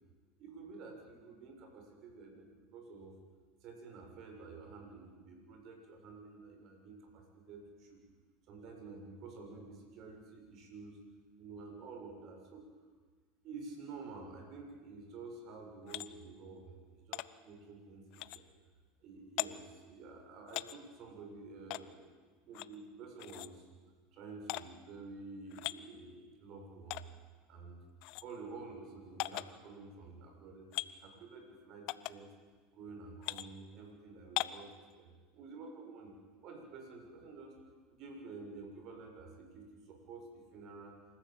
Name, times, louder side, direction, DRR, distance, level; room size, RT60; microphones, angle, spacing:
voice 1, 0.4-3.2 3.6-8.0 8.5-11.0 11.4-12.7 13.4-18.5 19.0-22.2 22.5-23.7 24.1-27.1 27.5-27.8 28.2-32.3 32.7-37.6 37.9-41.0, right 4 dB, 50° right, 3 dB, 6.9 m, -50 dB
sound 1, 15.9-16.1 17.1-17.3 18.1-18.4 19.4-19.5 20.5-20.8 21.7-21.8 22.5-22.7 23.2-23.5 24.5-24.6 25.5-25.8 26.9-27.0 28.0-28.2 29.2-29.5 30.7-30.9 31.9-32.1 33.2-33.5 34.4-34.6, left 19 dB, 60° left, 0.8 m, -38 dB
27.0 x 14.5 x 9.2 m, 1.4 s
hypercardioid pair, 90°, 0 cm